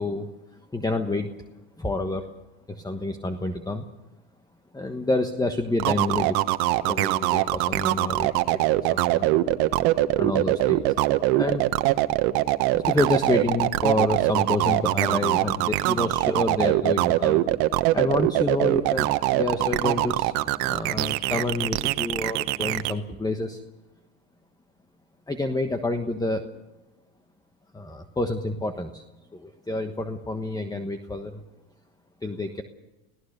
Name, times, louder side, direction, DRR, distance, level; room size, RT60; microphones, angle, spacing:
voice 1, 0.0-1.3 1.8-2.3 2.7-3.9 4.7-6.4 6.9-9.4 10.2-10.9 11.3-11.7 12.7-17.5 17.9-23.6 25.3-26.5 27.7-29.0 29.3-31.4 32.2-32.6, left 2 dB, 10° left, 7 dB, 1.3 m, -28 dB
sound 1, 5.8-22.9, right 17 dB, 65° right, 1.2 m, -22 dB
26.0 x 17.5 x 6.7 m, 1.1 s
supercardioid pair, 105°, 47 cm